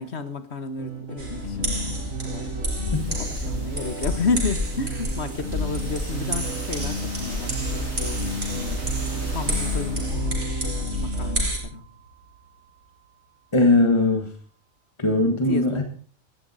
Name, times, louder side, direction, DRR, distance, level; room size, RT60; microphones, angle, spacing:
voice 1, 0.0-2.5 3.1-8.8 9.3-11.9 15.5-15.8, left 4 dB, 55° left, 10 dB, 1.7 m, -32 dB
sound 1, 0.8-11.4, equal, 65° right, 5.5 m, -34 dB
sound 2, 1.2-11.6, equal, 50° right, 5.1 m, -29 dB
sound 3, 1.2-13.1, right 2 dB, 90° right, 5.0 m, -39 dB
voice 2, 13.5-14.3 15.0-15.8, left 2 dB, 20° left, 4 dB, 1.6 m, -19 dB
17.0 x 14.0 x 4.2 m, 0.43 s
omnidirectional pair, 1.4 m